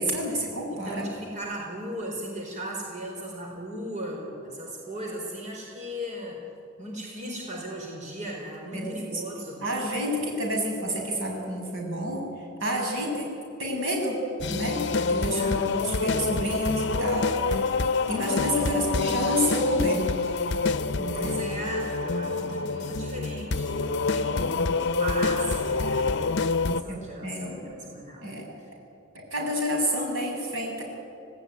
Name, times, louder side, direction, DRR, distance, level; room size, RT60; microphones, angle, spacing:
voice 1, 0.0-1.1 8.7-9.2 9.6-12.3 12.6-14.2 14.5-17.7 18.1-20.2 21.0-21.4 26.9-27.6 28.2-28.4 29.3-30.8, equal, 75° right, 0 dB, 7.8 m, -29 dB
voice 2, 0.7-6.4 6.8-9.6 15.2-15.7 18.7-19.0 21.1-26.2 26.6-28.3, right 1 dB, 35° right, -1 dB, 4.6 m, -37 dB
sound 1, 14.4-26.8, left 4 dB, 60° left, 0.8 m, -27 dB
27.0 x 18.5 x 9.6 m, 2.5 s
head